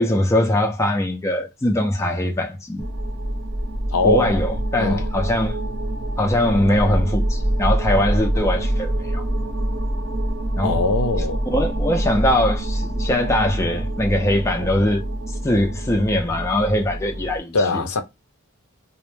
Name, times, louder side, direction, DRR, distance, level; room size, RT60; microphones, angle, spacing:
voice 1, 0.0-2.9 4.0-5.6 6.2-9.2 10.6-10.8 11.5-15.0 15.4-18.0, left 1 dB, 15° left, 0.3 m, -21 dB
sound 1, 2.8-17.4, right 1 dB, 50° right, 0.7 m, -25 dB
voice 2, 3.9-4.3 4.8-5.1 10.6-11.4 17.5-18.0, left 3 dB, 85° left, 0.5 m, -21 dB
2.0 x 2.0 x 3.0 m
head